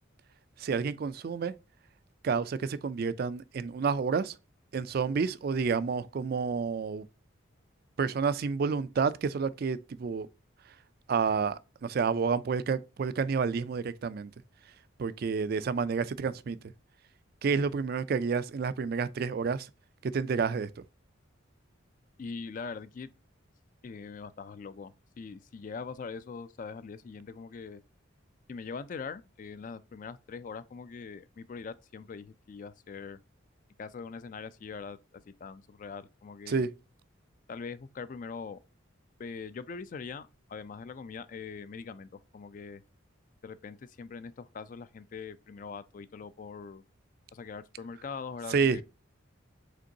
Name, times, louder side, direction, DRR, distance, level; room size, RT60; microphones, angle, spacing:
voice 1, 0.6-1.5 2.2-4.4 4.7-7.1 8.0-10.3 11.1-14.3 15.0-16.6 17.4-19.7 20.0-20.7 36.5-36.7 48.5-48.8, right 5 dB, 45° right, 0.3 m, -29 dB
voice 2, 22.2-23.1 23.8-24.9 25.2-27.8 28.5-33.2 33.8-36.7 37.5-38.6 39.2-42.8 43.4-46.8 47.3-48.8, left 5 dB, 40° left, 0.3 m, -42 dB
5.1 x 3.7 x 2.7 m
head